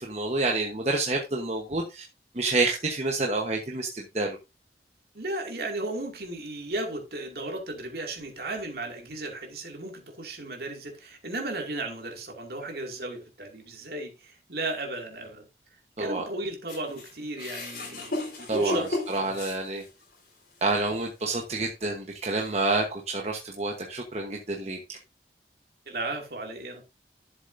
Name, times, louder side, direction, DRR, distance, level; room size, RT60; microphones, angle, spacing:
voice 1, 0.0-2.0 2.3-4.4 16.0-16.2 18.5-19.8 20.6-25.0, right 2 dB, 35° right, 1.1 m, -28 dB
voice 2, 5.1-15.5 16.0-18.9 19.2-19.4 25.9-26.9, right 2 dB, 60° right, 2.3 m, -35 dB
sound 1, 16.7-20.1 20.6-20.8 21.7-21.8, left 2 dB, 55° left, 4.1 m, -34 dB
11.0 x 7.4 x 2.6 m
head